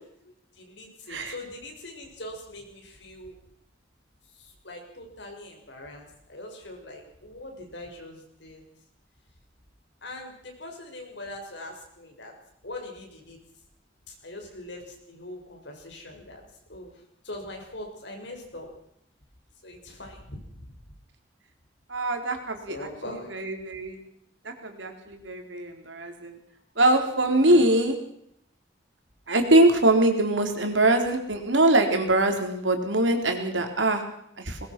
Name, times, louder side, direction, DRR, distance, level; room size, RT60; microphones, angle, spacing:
voice 1, 0.0-3.3 4.3-8.6 10.0-12.3 12.6-13.4 14.1-16.4 16.7-18.7 19.6-20.7 22.7-23.5 27.4-27.7, left 1 dB, 65° left, 2 dB, 6.6 m, -42 dB
voice 2, 21.9-24.0 24.4-26.4 26.8-28.0 29.3-34.0 34.4-34.6, right 1 dB, 75° right, 5 dB, 3.9 m, -23 dB
21.0 x 21.0 x 6.1 m, 0.73 s
head